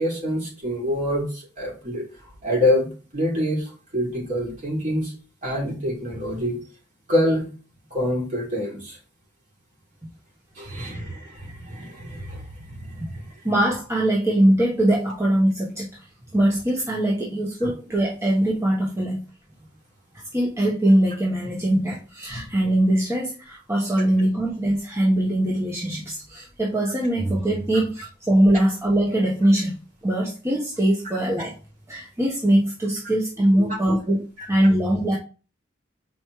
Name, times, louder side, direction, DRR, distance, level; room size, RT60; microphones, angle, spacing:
voice 1, 0.0-2.0 2.4-2.9 3.1-5.1 5.4-6.6 7.1-7.4 7.9-9.0 10.6-13.3 22.3-22.4 33.6-33.7 34.4-34.5, left 1 dB, 45° right, -3 dB, 3.3 m, -26 dB
voice 2, 13.4-15.9 16.3-19.2 20.3-29.8 30.0-31.5 31.9-35.2, right 1 dB, 15° right, -3 dB, 1.2 m, -22 dB
7.9 x 5.3 x 3.2 m, 0.35 s
head